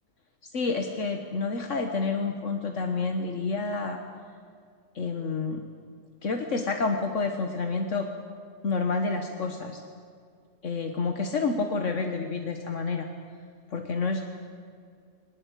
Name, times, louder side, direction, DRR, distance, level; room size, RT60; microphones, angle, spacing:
voice 1, 0.5-4.0 4.9-5.6 6.2-8.1 8.6-9.8 10.6-13.1 13.7-14.2, left 4 dB, 70° left, 4 dB, 1.7 m, -29 dB
22.5 x 19.5 x 8.4 m, 2.2 s
omnidirectional pair, 1.3 m